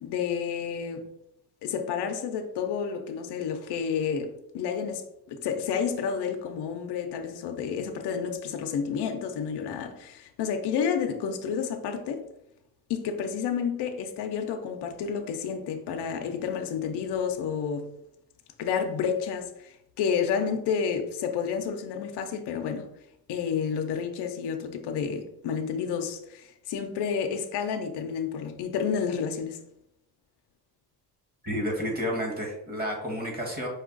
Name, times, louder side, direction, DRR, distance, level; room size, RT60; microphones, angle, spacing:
voice 1, 0.0-1.1 1.6-12.2 12.9-17.9 18.6-22.9 23.3-29.6, left 7 dB, 85° left, 0.6 m, -30 dB
voice 2, 31.4-33.7, equal, 25° right, 1.4 m, -30 dB
5.3 x 2.4 x 3.8 m
cardioid pair, 115°, 39 cm